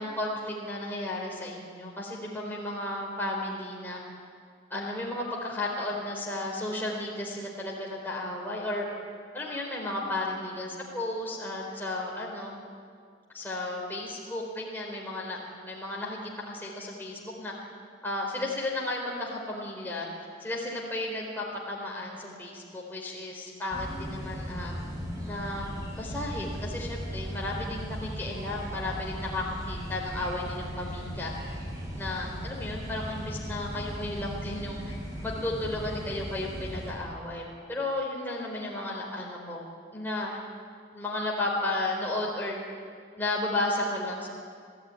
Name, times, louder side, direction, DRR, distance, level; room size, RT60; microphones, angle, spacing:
voice 1, 0.0-4.0 4.7-8.8 9.3-12.5 13.3-15.4 15.6-17.5 18.0-20.1 20.4-24.7 25.3-25.7 26.0-31.6 32.0-35.0 35.2-39.6 39.9-40.4 40.9-42.6 43.2-44.3, left 2 dB, 10° left, -3 dB, 4.2 m, -33 dB
sound 1, 23.7-36.9, equal, 20° right, 6.5 m, -37 dB
29.5 x 16.5 x 9.8 m, 2.2 s
head